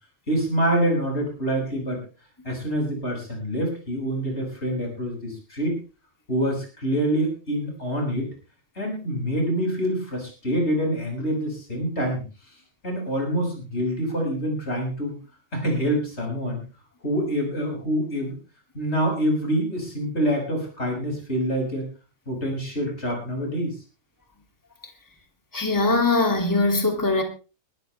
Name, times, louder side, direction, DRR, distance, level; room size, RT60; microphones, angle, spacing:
voice 1, 0.3-2.0 2.4-5.8 6.3-8.3 8.8-12.2 12.8-15.2 15.5-16.6 17.0-18.4 18.7-21.9 22.3-23.7, equal, 50° left, 0 dB, 7.3 m, -26 dB
voice 2, 25.5-27.2, left 2 dB, 15° left, 3 dB, 2.8 m, -21 dB
22.0 x 13.0 x 3.4 m, 0.34 s
omnidirectional pair, 1.5 m